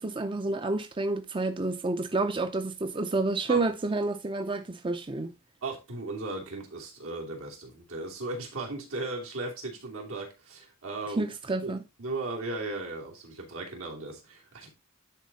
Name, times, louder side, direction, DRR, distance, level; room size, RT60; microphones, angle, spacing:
voice 1, 0.0-5.3 11.2-11.8, right 3 dB, 25° right, 0.6 m, -29 dB
voice 2, 5.6-11.3 11.6-11.7 12.0-14.7, right 2 dB, 80° right, 2.8 m, -36 dB
10.5 x 4.2 x 4.0 m
head